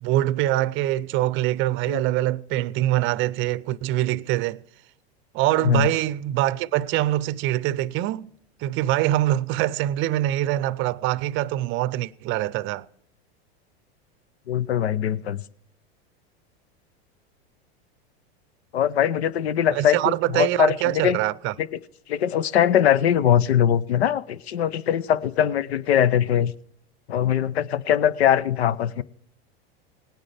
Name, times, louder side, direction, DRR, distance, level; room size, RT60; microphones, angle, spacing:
voice 1, 0.0-4.6 5.3-8.3 8.6-12.9 19.7-21.5, right 15 dB, 40° right, 0.6 m, -24 dB
voice 2, 14.5-15.4 18.7-21.2 21.6-21.7 22.1-26.5 27.1-29.0, left 9 dB, 85° left, 0.7 m, -21 dB
18.5 x 9.9 x 3.4 m
hypercardioid pair, 110°, 31 cm